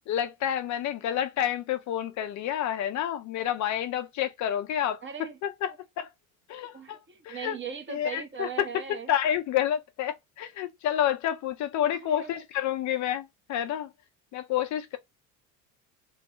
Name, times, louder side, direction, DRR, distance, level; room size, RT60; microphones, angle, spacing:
voice 1, 0.1-5.0 5.4-6.1 6.5-7.0 7.3-7.6 7.9-8.5 9.1-13.9 14.3-15.0, left 10 dB, 45° left, 0.5 m, -29 dB
voice 2, 5.0-5.4 6.5-9.1 11.9-12.3, right 6 dB, 25° right, 0.9 m, -39 dB
3.3 x 2.0 x 3.9 m
hypercardioid pair, 80°, 42 cm